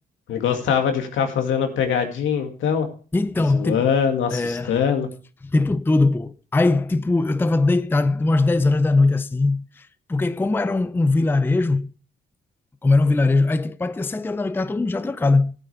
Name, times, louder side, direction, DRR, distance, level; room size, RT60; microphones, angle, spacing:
voice 1, 0.3-2.9 3.5-5.1, left 7 dB, 80° left, 2.2 m, -22 dB
voice 2, 3.1-3.9 4.3-4.8 5.4-11.9 12.8-15.5, left 3 dB, 10° left, 0.5 m, -20 dB
14.5 x 8.7 x 3.4 m
cardioid pair, 90°, 20 cm